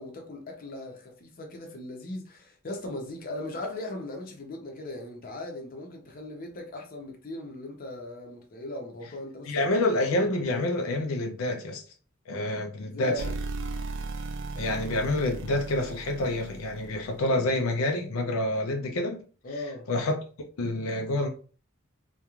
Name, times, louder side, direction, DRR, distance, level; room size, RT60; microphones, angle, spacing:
voice 1, 0.0-9.6 10.1-10.3 12.8-13.3 19.4-19.9, left 1 dB, 45° left, 0.6 m, -38 dB
voice 2, 9.5-11.8 12.3-13.2 14.6-19.2 19.9-20.2 20.6-21.3, left 2 dB, 90° left, 0.5 m, -27 dB
sound 1, 13.2-17.4, right 3 dB, 65° right, 0.3 m, -36 dB
2.4 x 2.2 x 2.9 m
head